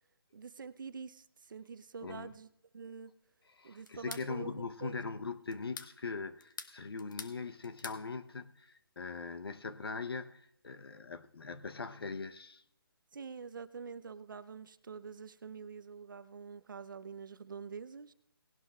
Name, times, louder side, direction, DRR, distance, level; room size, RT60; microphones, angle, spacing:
voice 1, 0.3-2.5 2.7-3.1 3.6-5.0 13.1-18.1, right 5 dB, 55° right, 0.7 m, -46 dB
voice 2, 3.6-12.6, left 4 dB, 75° left, 0.8 m, -41 dB
sound 1, 3.9-4.3 5.5-5.9 6.4-7.4 7.6-8.0, left 5 dB, 55° left, 1.2 m, -45 dB
18.5 x 11.5 x 2.4 m
hypercardioid pair, 165°, 13 cm